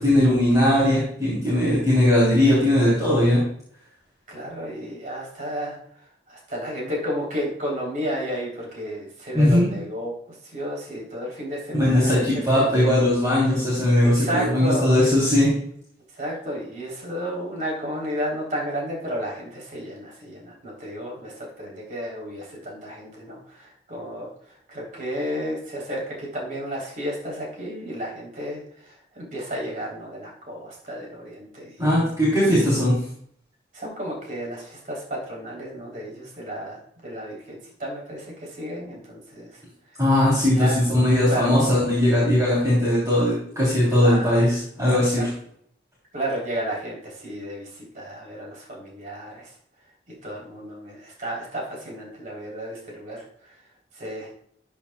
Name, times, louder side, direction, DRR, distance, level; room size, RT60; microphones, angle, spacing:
voice 1, 0.0-3.4 9.3-9.7 11.7-15.5 31.8-32.9 40.0-45.3, left 1 dB, 20° right, -8 dB, 3.5 m, -19 dB
voice 2, 4.3-5.8 6.3-10.1 10.5-12.3 12.5-13.0 14.1-15.0 16.1-24.3 24.7-31.7 33.7-39.5 40.5-40.7 41.3-41.8 44.0-44.4 44.9-45.3 46.1-49.5 50.2-53.3 54.0-54.3, equal, 45° right, -2 dB, 3.6 m, -32 dB
13.5 x 8.5 x 2.3 m, 0.65 s
head